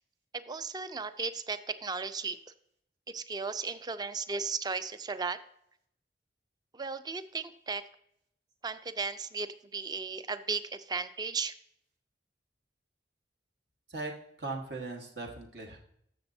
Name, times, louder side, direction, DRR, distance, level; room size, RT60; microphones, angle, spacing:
voice 1, 0.5-2.4 3.1-5.4 6.7-7.8 8.6-9.5 9.7-11.5, right 4 dB, 25° right, 13 dB, 0.4 m, -35 dB
voice 2, 14.4-15.8, right 3 dB, 65° right, 1 dB, 1.5 m, -38 dB
14.0 x 6.8 x 2.7 m, 0.71 s
head